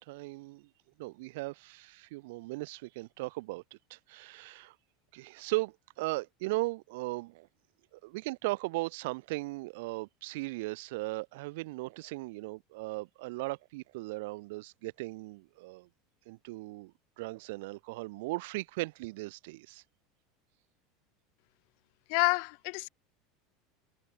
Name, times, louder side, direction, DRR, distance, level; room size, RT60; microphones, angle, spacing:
voice 1, 0.1-0.7 1.0-4.8 5.1-7.5 7.9-15.9 16.3-19.8, right 22 dB, 70° right, 0.4 m, -37 dB
voice 2, 22.1-22.9, left 40 dB or more, 65° left, 0.4 m, -28 dB
hypercardioid pair, 95°, 0 cm